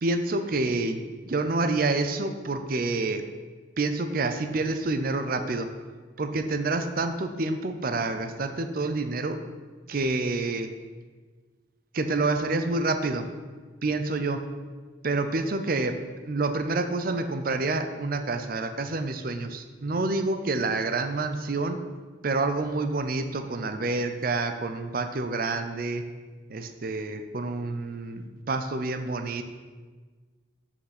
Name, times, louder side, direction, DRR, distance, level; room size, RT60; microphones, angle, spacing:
voice 1, 0.0-1.0 1.3-3.3 3.8-5.7 6.2-9.4 9.9-10.7 11.9-13.3 13.8-14.4 15.0-16.0 16.2-21.8 22.2-26.1 26.5-29.4, right 3 dB, 50° right, 9 dB, 0.6 m, -28 dB
8.0 x 5.9 x 6.0 m, 1.4 s
head